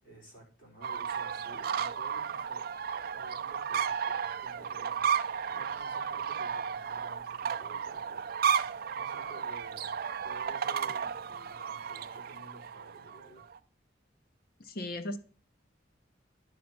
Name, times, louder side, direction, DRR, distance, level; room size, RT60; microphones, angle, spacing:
voice 1, 0.0-5.1 5.5-8.3 8.9-9.9 10.2-13.5, right 1 dB, 75° left, 4.5 m, -53 dB
sound 1, 0.8-13.6, right 7 dB, 50° right, 0.4 m, -33 dB
voice 2, 14.6-15.2, left 1 dB, 50° left, 0.8 m, -36 dB
10.0 x 5.2 x 5.9 m
head